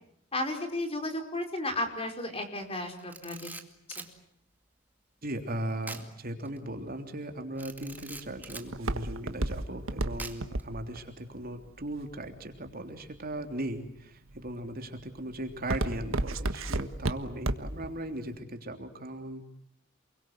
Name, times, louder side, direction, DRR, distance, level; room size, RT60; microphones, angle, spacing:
voice 1, 0.3-3.5 3.9-4.0, left 1 dB, 30° left, 5 dB, 4.8 m, -33 dB
Camera, 3.0-4.1 5.8-6.1 6.5-6.6 7.6-8.7 10.2-10.6, right 3 dB, 10° right, 2.3 m, -43 dB
voice 2, 5.2-19.4, right 1 dB, 50° right, 5 dB, 3.3 m, -38 dB
Walk footsteps, 7.6-12.7 13.3-13.8 14.3-14.6 15.0-17.9 18.2-18.3, right 2 dB, 80° right, 1.5 m, -32 dB
29.0 x 22.5 x 8.0 m, 0.73 s
head